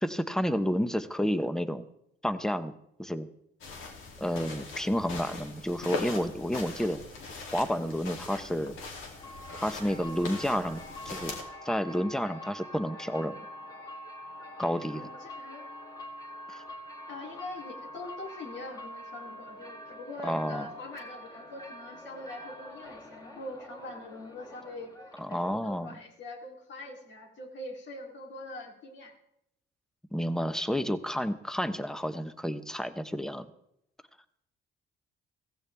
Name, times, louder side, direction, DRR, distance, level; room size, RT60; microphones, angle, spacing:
voice 1, 0.0-1.8 2.2-2.7 3.0-3.3 4.2-7.0 7.5-8.8 9.6-10.8 11.0-11.4 11.6-13.4 14.6-15.1 16.5-16.6 20.2-20.7 25.2-26.0 30.1-33.5, equal, 5° left, 11 dB, 1.0 m, -30 dB
sound 1, 3.6-11.4, left 3 dB, 85° left, 2.8 m, -41 dB
sound 2, 9.1-25.5, left 1 dB, 20° left, 3.0 m, -45 dB
voice 2, 14.9-15.6 17.1-24.9 25.3-29.1, left 2 dB, 65° left, 1 dB, 3.2 m, -43 dB
15.5 x 15.5 x 3.5 m, 0.79 s
cardioid pair, 90°, 20 cm